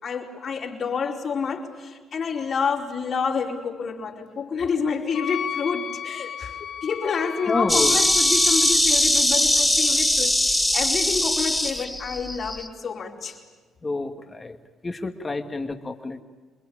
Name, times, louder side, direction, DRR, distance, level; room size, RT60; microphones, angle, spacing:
voice 1, 0.0-13.4 15.4-15.6, left 5 dB, 55° left, 0 dB, 4.7 m, -28 dB
Wind instrument woodwind instrument, 5.1-8.8, left 8 dB, 70° left, 1.3 m, -34 dB
voice 2, 7.5-8.0 13.8-14.6 14.8-16.2, left 3 dB, 25° left, 5 dB, 2.3 m, -28 dB
Insect, 7.7-12.7, left 1 dB, 10° left, 2.8 m, -21 dB
28.5 x 22.0 x 8.9 m, 1.4 s
supercardioid pair, 60°, 0 cm